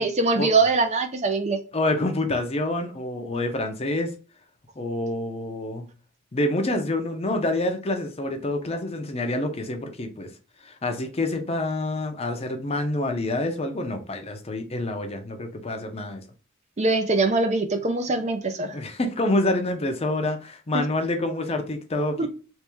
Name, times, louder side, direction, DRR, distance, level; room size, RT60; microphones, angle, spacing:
voice 1, 0.0-1.6 16.8-18.8 22.2-22.3, right 3 dB, 35° right, 0.5 m, -22 dB
voice 2, 1.7-4.1 4.8-5.9 6.3-10.3 10.6-16.2 18.7-22.3, left 2 dB, 30° left, 0.6 m, -27 dB
3.4 x 3.1 x 3.1 m
head